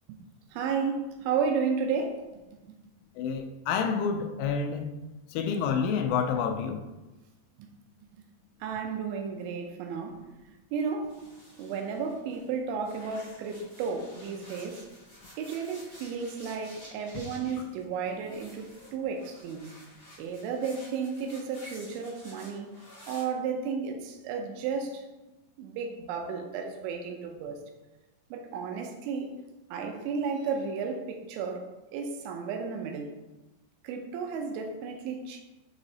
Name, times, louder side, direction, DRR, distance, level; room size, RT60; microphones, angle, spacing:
voice 1, 0.5-2.3 7.6-7.7 8.6-10.2 10.7-11.2 11.6-14.8 15.4-19.8 20.2-22.8 23.1-25.0 25.6-27.6 28.3-29.4 29.7-33.1 33.8-35.4, right 5 dB, 80° right, 4 dB, 3.0 m, -33 dB
voice 2, 3.2-4.9 5.3-6.8, left 6 dB, 85° left, 5 dB, 3.0 m, -28 dB
sound 1, 11.1-12.5 12.8-23.2, equal, 40° left, 1.1 m, -52 dB
7.1 x 5.0 x 2.8 m, 1.1 s
omnidirectional pair, 5.5 m